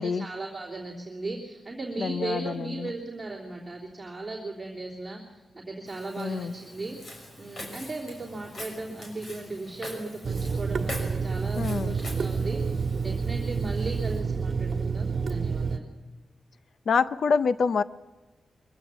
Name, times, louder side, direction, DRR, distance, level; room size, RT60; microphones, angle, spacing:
voice 1, 0.0-15.9, right 2 dB, 15° right, -4 dB, 3.2 m, -37 dB
voice 2, 2.0-2.9 6.2-6.5 11.6-12.0 16.9-17.8, left 5 dB, 60° left, 13 dB, 0.6 m, -26 dB
Walk footsteps, 5.9-14.2, left 1 dB, 45° left, 5.9 m, -44 dB
Water tap faucet / Sink (filling or washing), 10.2-15.8, right 5 dB, 55° right, 1.5 m, -29 dB
23.0 x 16.0 x 7.3 m, 1.2 s
wide cardioid pair, 170°, 0 cm